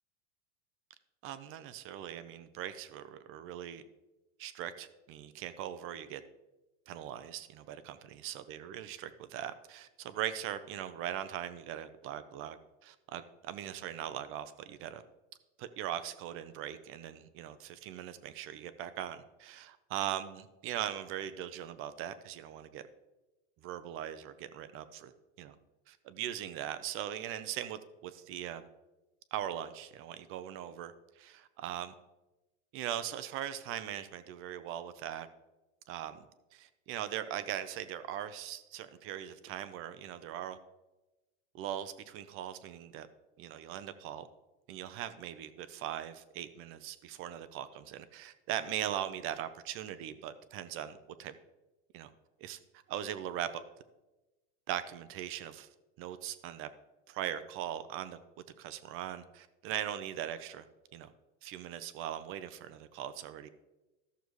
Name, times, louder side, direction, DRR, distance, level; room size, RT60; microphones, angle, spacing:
voice 1, 1.2-3.8 4.4-6.2 6.9-12.6 12.8-15.0 15.6-22.9 23.6-25.1 25.4-25.6 25.9-28.7 29.3-31.9 32.7-35.3 35.9-36.3 36.5-40.6 41.5-43.1 43.4-44.3 44.7-51.3 51.9-52.1 52.4-52.6 52.9-53.6 54.7-55.7 56.0-56.7 57.1-58.2 58.6-60.7 60.9-61.1 61.4-63.5, right 11 dB, 35° right, 12 dB, 0.5 m, -40 dB
13.5 x 6.7 x 3.1 m, 1.0 s
supercardioid pair, 140°, 38 cm